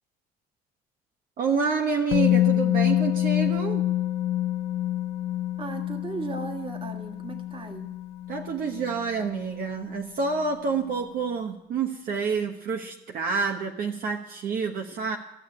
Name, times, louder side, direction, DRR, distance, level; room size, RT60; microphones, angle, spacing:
voice 1, 1.4-3.8 8.3-15.2, right 5 dB, 60° right, 3 dB, 1.1 m, -28 dB
Musical instrument, 2.1-10.0 10.3-10.5, left 13 dB, 80° left, 0.7 m, -27 dB
voice 2, 5.6-8.0, right 4 dB, 30° right, 5 dB, 1.7 m, -36 dB
15.0 x 6.6 x 9.7 m, 0.91 s
cardioid pair, 110°, 17 cm